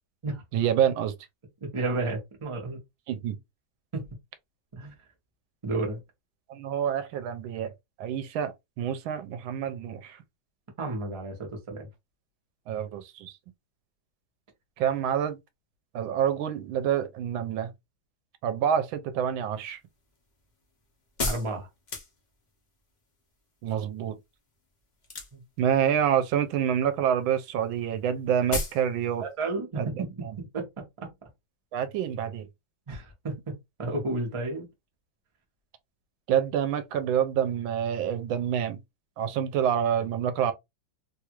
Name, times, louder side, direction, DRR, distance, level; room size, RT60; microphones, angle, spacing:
voice 1, 0.5-1.1 3.1-3.4 6.5-7.7 8.0-8.5 8.8-10.2 12.7-13.3 14.8-15.4 15.9-17.7 18.4-19.8 23.6-24.2 25.6-29.2 29.8-29.9 30.2-30.4 31.7-32.5 36.3-38.8 39.2-40.5, right 9 dB, 80° right, 1.4 m, -27 dB
voice 2, 1.7-2.8 3.9-4.0 4.7-4.9 5.6-6.0 10.8-11.9 21.2-21.7 25.3-25.4 29.2-30.6 31.0-31.1 32.9-33.3 33.8-34.7, right 2 dB, 25° right, 0.7 m, -32 dB
sound 1, 19.6-22.6 25.0-25.6 25.9-26.5 26.8-27.0 27.3-27.4 27.6-27.7 28.0-28.1 28.5-28.9 29.1-29.2, left 2 dB, 75° left, 0.4 m, -33 dB
3.3 x 2.4 x 2.9 m
omnidirectional pair, 2.2 m